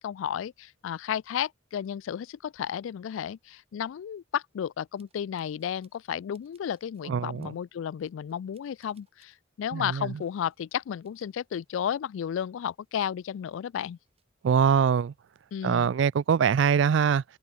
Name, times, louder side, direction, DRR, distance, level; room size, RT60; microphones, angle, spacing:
voice 1, 0.0-14.0 15.5-15.9, left 9 dB, 75° left, 0.3 m, -33 dB
sound 1, 5.0-6.1 6.3-7.1 7.4-7.6 8.0-9.4 10.0-10.6 10.9-12.1 12.4-12.5 13.0-14.9 15.2-15.7, right 8 dB, 30° right, 8.0 m, -71 dB
voice 2, 7.0-7.5 9.7-10.2 14.4-15.1 15.6-17.2, right 7 dB, 70° right, 0.3 m, -23 dB
open air
head